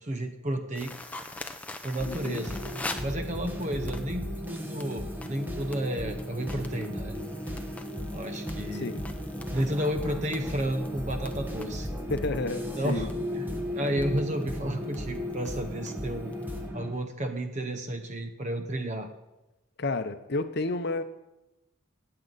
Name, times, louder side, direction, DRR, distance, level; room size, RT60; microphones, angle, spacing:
voice 1, 0.0-0.9 1.8-2.6 3.0-7.2 8.1-8.9 9.5-11.9 12.8-13.1 13.4-13.5 13.7-16.3 16.7-19.1, right 1 dB, 35° right, 6 dB, 0.9 m, -32 dB
sound 1, 0.7-16.7, left 2 dB, 5° left, 0.6 m, -45 dB
sound 2, 2.0-16.9, equal, 10° right, 1.1 m, -35 dB
voice 2, 2.1-2.5 8.7-9.0 12.1-13.1 19.8-21.0, left 2 dB, 50° left, 10 dB, 0.7 m, -31 dB
18.0 x 7.8 x 4.1 m, 0.97 s
head